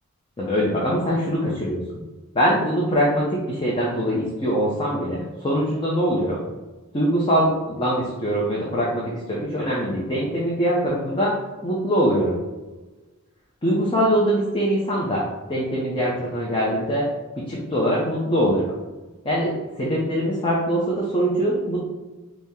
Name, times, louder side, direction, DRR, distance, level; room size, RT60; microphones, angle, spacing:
voice 1, 0.4-1.8 2.3-6.4 6.9-11.4 11.6-12.4 13.6-15.2 15.5-17.1 17.4-18.7 19.2-21.8, equal, 25° left, -5 dB, 0.5 m, -23 dB
4.1 x 2.1 x 3.6 m, 1.2 s
head